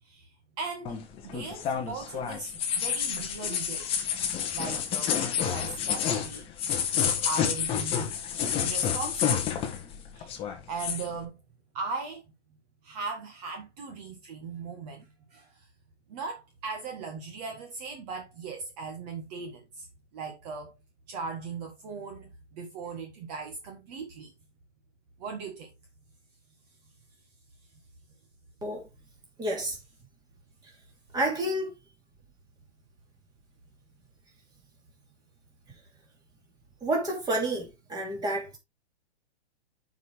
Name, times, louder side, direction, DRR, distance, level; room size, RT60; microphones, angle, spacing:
voice 1, 0.0-3.9 4.5-6.5 7.2-8.1 8.6-9.5 10.1-10.4 10.7-11.4 11.7-12.2 12.8-15.7 16.1-19.9 20.1-20.8 21.1-24.3 25.2-25.7, right 4 dB, 35° right, 1.7 m, -38 dB
sound 1, 0.9-10.0 10.2-11.1, left 8 dB, 15° left, 1.1 m, -29 dB
voice 2, 29.4-29.8 30.6-30.7 31.1-31.7 36.8-38.6, right 1 dB, 10° right, 2.8 m, -30 dB
10.0 x 5.1 x 3.5 m
hypercardioid pair, 155°, 34 cm